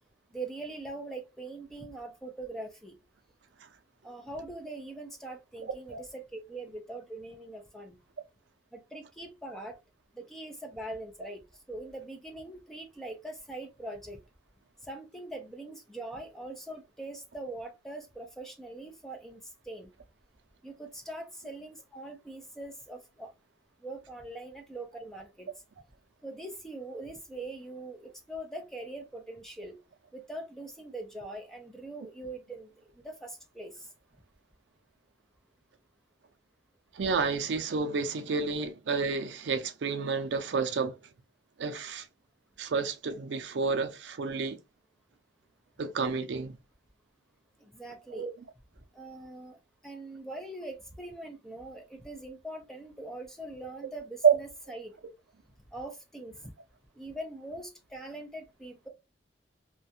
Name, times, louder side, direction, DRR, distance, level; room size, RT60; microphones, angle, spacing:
voice 1, 0.3-2.9 4.0-8.0 8.7-9.8 10.1-11.4 11.7-14.2 14.8-19.4 19.7-19.9 20.6-23.3 23.8-25.5 26.2-29.8 30.1-32.7 33.0-33.7 47.6-48.2 48.9-49.6 49.8-54.9 55.7-56.5 57.0-58.9, right 2 dB, ahead, 0.4 m, -42 dB
voice 2, 36.9-41.0 41.6-42.1 42.6-44.6 45.8-46.6 48.1-48.3 54.2-54.3, right 5 dB, 80° right, 0.4 m, -29 dB
2.4 x 2.2 x 2.6 m
head